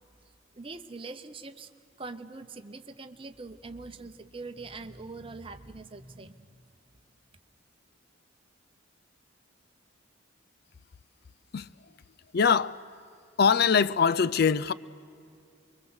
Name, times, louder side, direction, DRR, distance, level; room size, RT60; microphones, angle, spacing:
voice 1, 0.5-1.7 2.0-6.5, right 3 dB, 25° right, 0.9 m, -43 dB
voice 2, 12.3-12.8 13.4-14.7, left 6 dB, 50° left, 0.5 m, -23 dB
25.0 x 23.0 x 7.9 m
head